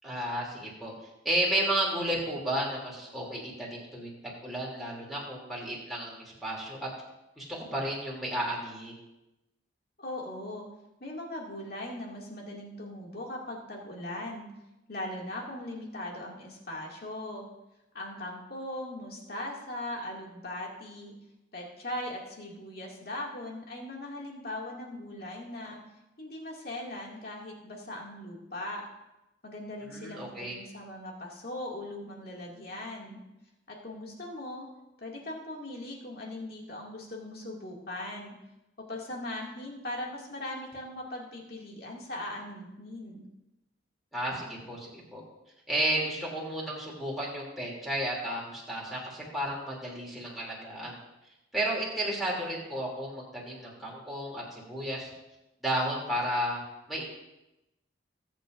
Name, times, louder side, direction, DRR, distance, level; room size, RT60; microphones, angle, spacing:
voice 1, 0.0-0.9 1.2-6.9 7.4-9.0 29.8-30.6 44.1-45.2 45.7-51.0 51.5-55.1 55.6-56.6 56.9-57.0, right 1 dB, ahead, -6 dB, 3.1 m, -32 dB
voice 2, 10.0-10.7 11.0-14.5 14.9-17.5 17.9-21.1 21.5-25.8 26.2-28.9 29.4-33.2 33.7-34.7 35.0-38.3 38.9-43.2, left 1 dB, 55° left, -2 dB, 2.5 m, -39 dB
21.0 x 7.9 x 2.7 m, 0.95 s
head